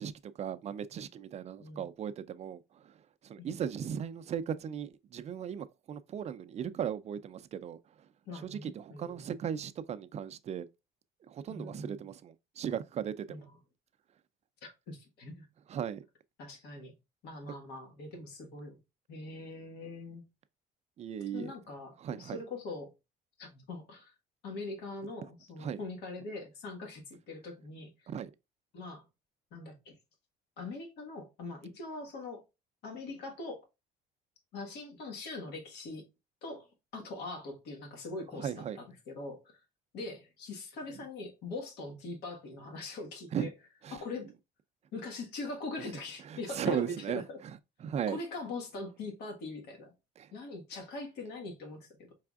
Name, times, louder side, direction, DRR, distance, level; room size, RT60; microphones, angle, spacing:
voice 1, 0.0-2.6 3.2-7.8 8.4-10.7 11.3-13.4 15.7-16.0 21.0-21.5 22.0-22.4 25.6-25.8 28.1-28.3 38.4-38.8 43.3-43.5 43.8-44.0 46.3-48.2 50.2-50.3, right 8 dB, 40° right, 0.4 m, -37 dB
voice 2, 8.2-9.4 11.5-12.1 13.3-13.6 14.6-15.5 16.4-16.9 17.2-18.8 19.1-20.2 21.3-22.9 23.4-24.1 24.4-28.1 28.7-29.0 29.5-29.9 30.6-32.4 32.8-33.6 34.5-36.0 36.4-39.6 39.9-43.5 43.9-44.3 44.9-47.4 48.1-49.9 50.3-52.1, left 3 dB, 80° left, 1.5 m, -42 dB
4.7 x 3.4 x 2.3 m
cardioid pair, 110°, 17 cm